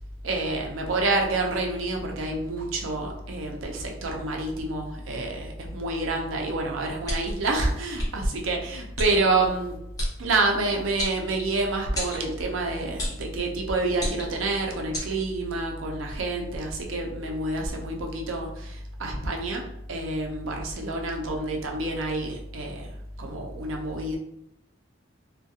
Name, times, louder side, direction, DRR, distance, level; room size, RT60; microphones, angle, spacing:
voice 1, 0.2-9.8 10.2-19.6 19.9-22.9 23.2-24.2, right 2 dB, 85° right, 1 dB, 0.5 m, -28 dB
sound 1, 7.0-7.4 8.0-8.1 9.0-9.1 10.0-10.1 11.0-11.6 11.9-12.2 13.0-13.2 13.9-14.4 14.9-15.1, equal, 20° left, 0.7 m, -30 dB
2.3 x 2.2 x 2.7 m, 0.78 s
head